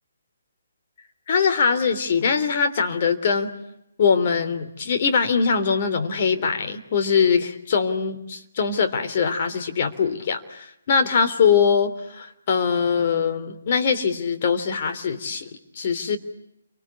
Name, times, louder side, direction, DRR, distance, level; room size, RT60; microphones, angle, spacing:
voice 1, 1.3-3.5 4.0-16.2, left 6 dB, 45° left, 7 dB, 3.2 m, -22 dB
29.5 x 24.5 x 8.3 m, 0.82 s
figure-of-eight pair, 140°, 0 cm